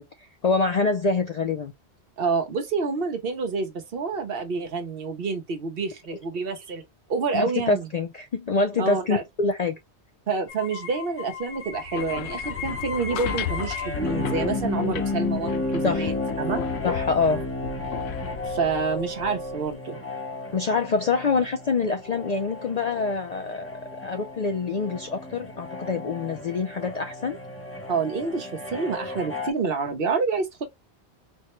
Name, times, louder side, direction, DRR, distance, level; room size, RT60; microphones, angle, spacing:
voice 1, 0.0-1.7 7.3-9.8 15.8-16.1 16.8-17.4 20.5-27.4, left 4 dB, 55° left, 0.4 m, -26 dB
voice 2, 2.2-6.8 7.1-7.9 8.8-9.2 10.3-16.1 16.4-16.6 18.5-20.0 27.9-30.7, right 4 dB, 60° right, 1.0 m, -28 dB
sound 1, 10.5-29.5, left 3 dB, 15° left, 0.7 m, -33 dB
sound 2, 11.7-19.7, left 9 dB, 75° left, 0.8 m, -35 dB
4.4 x 2.1 x 3.0 m
omnidirectional pair, 1.1 m